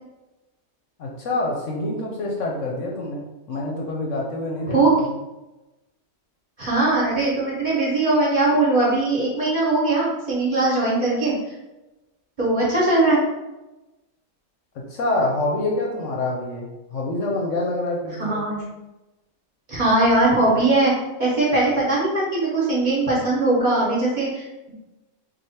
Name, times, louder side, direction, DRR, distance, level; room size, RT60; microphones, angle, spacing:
voice 1, 1.0-5.1 14.9-18.4, left 2 dB, 65° left, -1 dB, 0.9 m, -26 dB
voice 2, 6.6-11.3 12.4-13.2 18.2-18.6 19.7-20.9 21.2-24.7, right 2 dB, 35° right, -6 dB, 1.1 m, -20 dB
3.2 x 2.4 x 4.2 m, 1.0 s
omnidirectional pair, 1.5 m